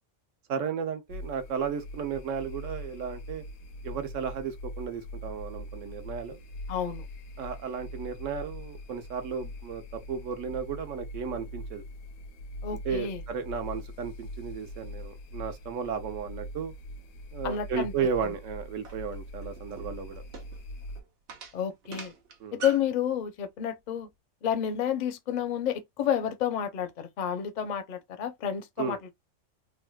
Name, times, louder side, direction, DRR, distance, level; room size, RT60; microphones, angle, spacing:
voice 1, 0.5-3.4 3.8-6.4 7.4-11.8 12.7-16.7 17.3-20.2 22.4-22.6 28.8-29.0, right 6 dB, 80° right, 1.0 m, -34 dB
sound 1, 1.1-21.0, left 1 dB, 85° left, 1.0 m, -42 dB
voice 2, 6.7-7.0 12.6-13.2 17.4-17.9 21.5-22.1 22.5-24.1 24.4-29.0, left 9 dB, 50° left, 0.5 m, -30 dB
sound 2, 18.8-23.0, right 5 dB, 60° right, 0.9 m, -43 dB
3.5 x 2.2 x 2.2 m
omnidirectional pair, 1.3 m